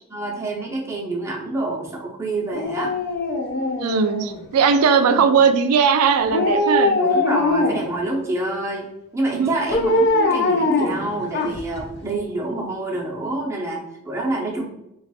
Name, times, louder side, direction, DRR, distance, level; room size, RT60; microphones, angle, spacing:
voice 1, 0.1-2.9 5.1-5.4 7.0-14.6, right 2 dB, 15° right, -3 dB, 0.6 m, -27 dB
Dog, 2.5-4.6 6.3-8.0 9.7-11.8 12.2-12.3, left 2 dB, 50° left, 0.5 m, -21 dB
voice 2, 3.8-7.0 9.3-9.5 12.1-12.2 14.4-14.5, right 6 dB, 85° right, 9 dB, 0.4 m, -18 dB
3.2 x 2.3 x 4.1 m, 0.83 s
head